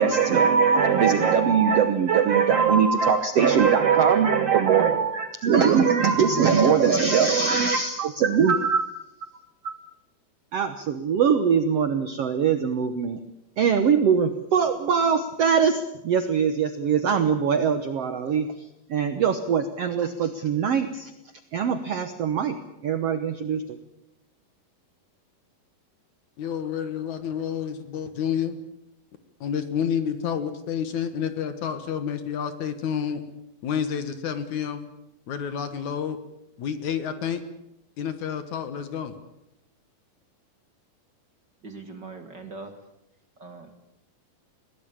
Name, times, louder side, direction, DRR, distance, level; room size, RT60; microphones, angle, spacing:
voice 1, 0.0-9.0 9.6-9.7 10.5-13.2 13.6-21.1 21.5-22.6 22.8-23.8, right 6 dB, 65° right, 9 dB, 1.6 m, -22 dB
voice 2, 26.4-28.6 29.4-33.2 33.6-34.8 35.3-36.2 36.6-37.4 38.0-39.2, left 8 dB, 60° left, 10 dB, 2.5 m, -29 dB
voice 3, 41.6-42.7 43.4-43.8, right 3 dB, 40° right, 6 dB, 2.0 m, -41 dB
22.5 x 17.5 x 8.8 m, 0.84 s
omnidirectional pair, 4.2 m